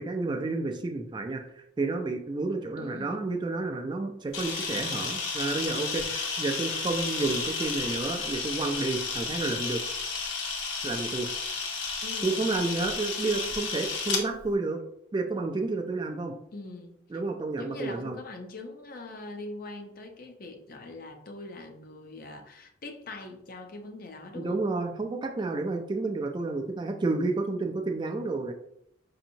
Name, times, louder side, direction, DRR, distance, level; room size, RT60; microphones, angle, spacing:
voice 1, 0.0-9.8 10.8-11.3 12.2-14.8 15.1-16.3 17.1-18.1 24.3-28.5, right 3 dB, 25° right, 4 dB, 0.3 m, -30 dB
voice 2, 2.8-3.2 12.0-12.5 16.5-17.0 17.6-24.6, left 2 dB, 50° left, 5 dB, 0.5 m, -42 dB
Camera, 4.3-14.2, left 4 dB, 80° left, 0.8 m, -32 dB
5.1 x 2.8 x 2.7 m, 0.74 s
head